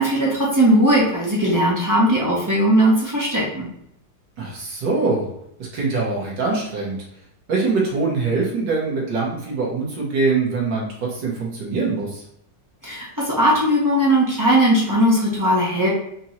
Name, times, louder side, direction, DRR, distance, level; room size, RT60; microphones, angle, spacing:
voice 1, 0.0-3.7 12.8-15.9, right 1 dB, 25° right, -6 dB, 0.4 m, -18 dB
voice 2, 4.4-5.3 5.6-7.0 7.5-12.2, right 4 dB, 70° right, -3 dB, 1.8 m, -23 dB
5.2 x 2.8 x 2.9 m, 0.75 s
omnidirectional pair, 2.0 m